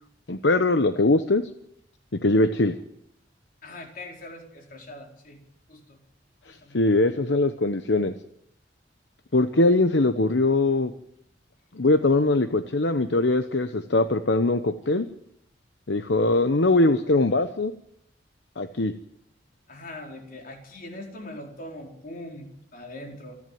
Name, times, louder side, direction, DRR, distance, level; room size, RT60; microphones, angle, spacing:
voice 1, 0.3-1.4 2.2-2.7 6.7-8.1 9.3-10.9 11.8-15.1 15.9-17.7 18.6-18.9, left 2 dB, 75° left, 9 dB, 1.0 m, -21 dB
voice 2, 3.6-5.4 5.7-6.0 6.4-6.8 19.7-23.4, left 1 dB, 50° left, 2 dB, 4.6 m, -41 dB
28.0 x 11.0 x 9.4 m, 0.74 s
head